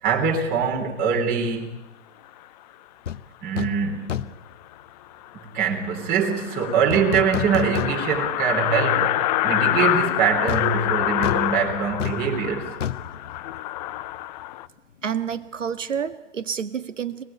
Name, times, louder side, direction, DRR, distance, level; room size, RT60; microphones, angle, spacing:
voice 1, 0.0-1.8 3.4-4.2 5.5-12.7, right 6 dB, 25° right, 3.3 m, -23 dB
sound 1, 3.1-3.2 3.6-3.8 4.1-4.5 6.9-8.3 8.7-8.8 10.5-14.1 14.4-14.5, left 9 dB, 75° left, 1.2 m, -31 dB
sound 2, 4.7-4.8 5.2-5.3 5.6-5.7 5.9-14.7, left 15 dB, 35° left, 0.9 m, -26 dB
voice 2, 15.0-17.2, right 7 dB, 85° right, 1.9 m, -29 dB
26.5 x 20.5 x 8.7 m
hypercardioid pair, 135°, 37 cm